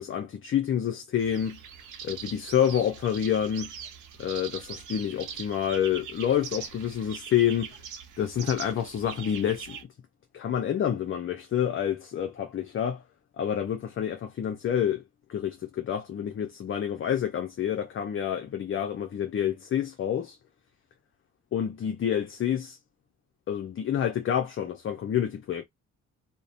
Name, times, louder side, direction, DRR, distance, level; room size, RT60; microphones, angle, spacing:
voice 1, 0.0-1.6 2.0-3.7 4.2-7.7 8.2-9.8 10.3-13.0 13.4-15.0 15.3-20.4 21.5-22.8 23.5-25.6, left 9 dB, 45° left, 0.5 m, -28 dB
sound 1, 1.2-9.8, right 7 dB, 80° right, 0.8 m, -42 dB
2.7 x 2.1 x 2.4 m
cardioid pair, 90°, 30 cm